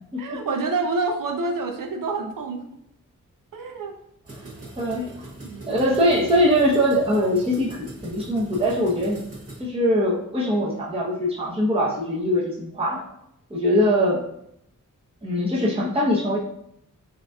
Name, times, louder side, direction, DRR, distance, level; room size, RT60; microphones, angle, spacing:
voice 1, 0.2-2.6 3.5-4.0 4.4-4.7 5.4-5.8, right 3 dB, 75° right, 4 dB, 0.7 m, -28 dB
sound 1, 4.2-9.6, right 2 dB, 45° right, 1.4 m, -41 dB
voice 2, 4.8-5.1 5.6-9.2 9.6-13.1 13.5-14.2 15.2-16.4, equal, 15° right, -4 dB, 0.8 m, -22 dB
5.8 x 2.7 x 2.3 m, 0.75 s
wide cardioid pair, 75°, 33 cm